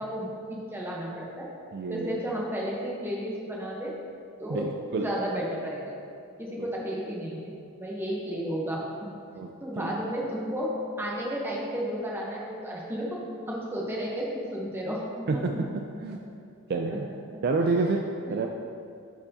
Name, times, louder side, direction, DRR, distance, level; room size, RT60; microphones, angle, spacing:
voice 1, 0.0-1.5 1.9-3.9 4.4-4.6 4.9-5.8 6.4-9.1 9.6-10.7 11.0-13.2 13.5-15.6 16.9-17.4 18.2-18.3, equal, 10° right, -4 dB, 0.9 m, -33 dB
voice 2, 1.7-2.2 4.5-5.1 6.6-6.7 9.4-9.5 9.8-10.0 15.3-16.2 16.7-17.1 17.4-18.0 18.3-18.5, right 3 dB, 45° right, 3 dB, 0.3 m, -28 dB
10.5 x 4.5 x 2.8 m, 2.4 s
head